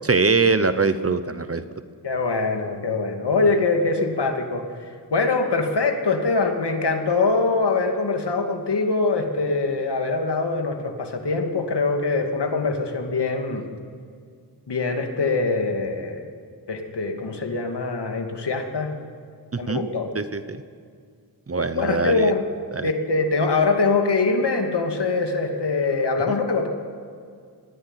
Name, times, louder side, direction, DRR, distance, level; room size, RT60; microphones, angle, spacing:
voice 1, 0.0-1.6 19.5-19.9 20.1-20.6 21.5-22.3 22.7-22.9, right 4 dB, 35° right, 11 dB, 0.9 m, -22 dB
voice 2, 2.0-4.6 5.1-13.6 14.7-16.2 16.7-18.9 19.6-20.1 21.7-22.4 22.8-26.7, left 3 dB, 70° left, 3 dB, 2.6 m, -23 dB
20.0 x 15.0 x 9.9 m, 2.2 s
wide cardioid pair, 115°, 42 cm